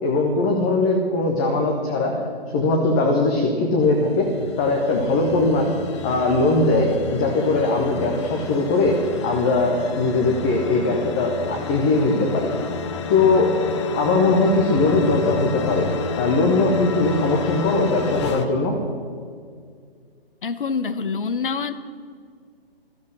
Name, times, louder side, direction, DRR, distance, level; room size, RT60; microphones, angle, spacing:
voice 1, 0.0-2.2 2.5-4.3 4.6-5.7 6.0-12.5 13.1-13.6 13.9-15.9 16.2-18.8, left 3 dB, 5° left, 1 dB, 0.4 m, -20 dB
sound 1, 3.8-18.5, left 5 dB, 30° left, 1.0 m, -31 dB
voice 2, 20.4-21.8, left 5 dB, 55° left, 11 dB, 1.2 m, -26 dB
16.0 x 14.0 x 6.3 m, 2.1 s
figure-of-eight pair, 130°, 31 cm